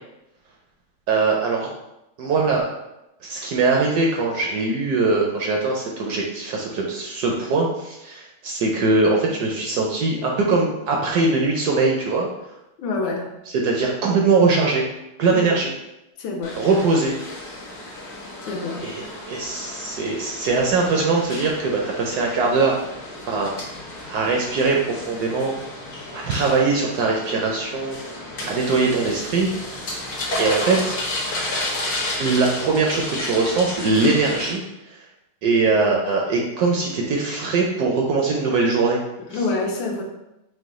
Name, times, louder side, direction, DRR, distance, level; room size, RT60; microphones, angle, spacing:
voice 1, 1.1-1.7 2.2-2.6 3.2-12.3 13.6-14.9 15.2-15.7 16.6-17.2 18.8-22.8 23.3-23.5 24.1-25.6 26.1-29.8 30.4-31.0 32.2-35.0 35.4-39.0 39.3-39.4, right 3 dB, 70° right, -1 dB, 1.0 m, -21 dB
voice 2, 12.8-13.3 15.3-15.5 16.2-16.6 18.4-18.9 39.3-40.0, left 3 dB, 85° left, 1 dB, 1.4 m, -27 dB
sound 1, 16.4-34.5, left 2 dB, 55° left, 1.1 m, -32 dB
4.8 x 2.2 x 3.6 m, 0.91 s
omnidirectional pair, 2.1 m